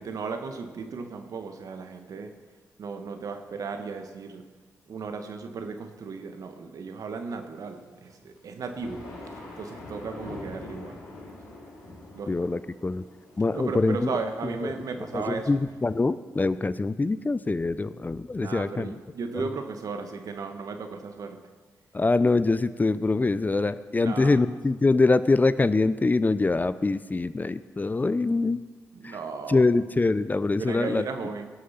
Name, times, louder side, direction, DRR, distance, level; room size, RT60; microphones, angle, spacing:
voice 1, 0.0-2.3 2.8-4.4 4.9-9.1 9.6-11.0 12.1-12.4 13.5-15.5 18.4-21.4 24.0-24.4 28.9-29.6 30.6-31.5, right 4 dB, 65° right, 6 dB, 1.4 m, -35 dB
sound 1, 8.0-16.0, left 2 dB, 80° left, 2.7 m, -44 dB
voice 2, 12.3-13.0 13.4-14.2 14.6-14.7 15.1-19.0 19.3-19.4 21.9-28.6 29.0-29.2 29.5-31.0, left 3 dB, 25° left, 14 dB, 0.6 m, -24 dB
17.5 x 6.6 x 5.7 m, 1.4 s
supercardioid pair, 45°, 6 cm